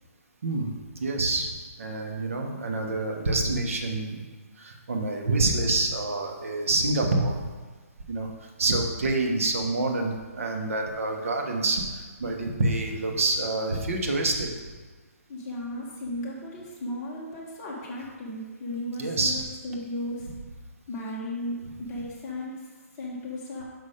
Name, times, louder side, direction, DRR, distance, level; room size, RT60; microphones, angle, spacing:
voice 1, 0.4-1.5 1.8-4.2 4.6-7.4 8.1-14.5 19.0-19.4 20.3-20.4, right 2 dB, 60° right, 2 dB, 1.1 m, -27 dB
voice 2, 15.3-19.4 19.6-20.3 20.9-22.6 23.0-23.6, left 1 dB, 15° left, -5 dB, 1.2 m, -35 dB
6.0 x 5.5 x 5.0 m, 1.4 s
hypercardioid pair, 170°, 8 cm